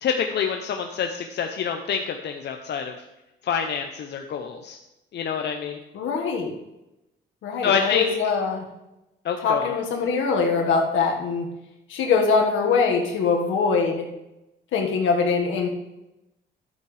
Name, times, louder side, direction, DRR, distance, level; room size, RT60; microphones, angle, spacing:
voice 1, 0.0-3.0 3.4-4.8 5.1-5.8 7.6-8.1 9.2-9.7, left 7 dB, 60° left, 4 dB, 0.7 m, -26 dB
voice 2, 5.9-6.5 7.4-8.7 9.4-11.4 11.9-14.1 14.7-15.7, left 5 dB, 80° left, 1 dB, 1.7 m, -23 dB
12.0 x 8.3 x 3.3 m, 0.95 s
cardioid pair, 90°, 20 cm